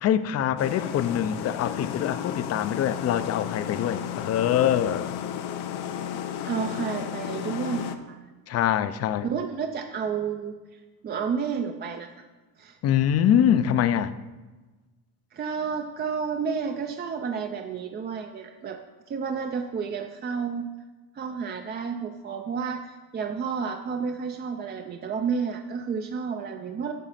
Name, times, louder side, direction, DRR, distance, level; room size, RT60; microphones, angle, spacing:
voice 1, 0.0-5.2 8.5-9.3 12.8-14.2, left 10 dB, 40° left, 0.4 m, -24 dB
sound 1, 0.6-8.0, left 9 dB, 80° left, 0.7 m, -33 dB
voice 2, 6.5-8.2 9.2-12.1 12.6-12.8 15.3-18.8 19.1-20.7 21.1-26.9, right 6 dB, 30° right, 0.4 m, -31 dB
9.1 x 4.9 x 5.6 m
cardioid pair, 145°, 38 cm